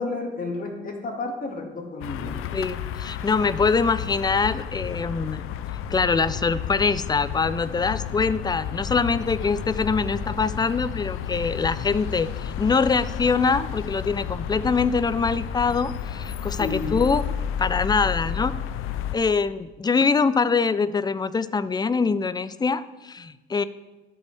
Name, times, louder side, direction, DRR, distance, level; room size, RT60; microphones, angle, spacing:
voice 1, 0.0-2.5 16.6-16.9, left 3 dB, 40° left, 1 dB, 1.9 m, -31 dB
sound 1, 2.0-19.2, left 9 dB, 80° left, 0.5 m, -32 dB
voice 2, 2.5-5.4 5.9-17.2 17.6-18.5 19.1-23.6, left 4 dB, 20° left, 15 dB, 0.4 m, -24 dB
12.5 x 5.3 x 3.3 m, 1.1 s
supercardioid pair, 70°, 21 cm